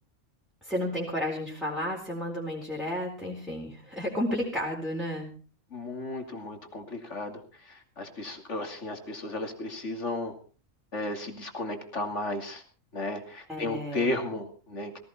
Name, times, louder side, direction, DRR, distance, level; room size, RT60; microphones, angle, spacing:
voice 1, 0.6-5.3 13.5-14.1, left 1 dB, ahead, -4 dB, 4.1 m, -32 dB
voice 2, 5.7-7.4 7.7-10.3 10.9-12.6 12.9-15.0, left 2 dB, 65° left, 5 dB, 3.0 m, -34 dB
18.0 x 16.5 x 4.3 m, 0.39 s
omnidirectional pair, 1.3 m